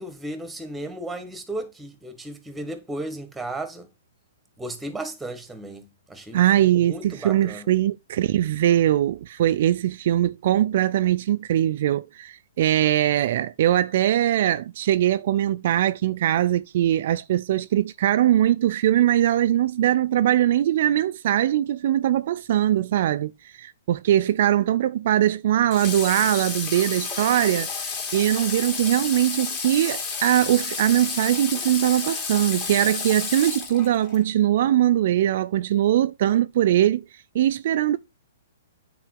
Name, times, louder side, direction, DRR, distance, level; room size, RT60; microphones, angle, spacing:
voice 1, 0.0-3.9 4.6-7.7, right 1 dB, 5° right, 1.5 m, -35 dB
voice 2, 6.3-23.3 23.6-27.7 28.1-37.0 37.3-38.0, right 12 dB, 55° right, 0.4 m, -21 dB
Water / Water tap faucet, 25.7-34.2, left 5 dB, 30° left, 2.6 m, -31 dB
9.1 x 4.6 x 3.7 m
hypercardioid pair, 130°, 0 cm